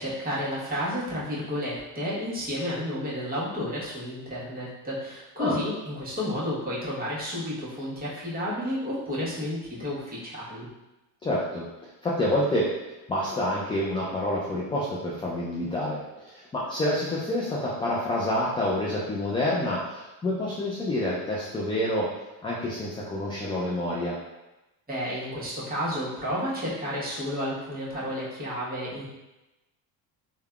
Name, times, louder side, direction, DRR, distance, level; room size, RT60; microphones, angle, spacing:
voice 1, 0.0-10.7 24.9-29.0, equal, 20° right, -8 dB, 1.2 m, -31 dB
voice 2, 11.2-11.7 12.0-12.7 13.1-16.0 16.2-22.1 22.4-24.2, left 1 dB, 15° left, -5 dB, 0.3 m, -28 dB
3.3 x 2.2 x 2.3 m, 1.0 s
supercardioid pair, 90°, 42 cm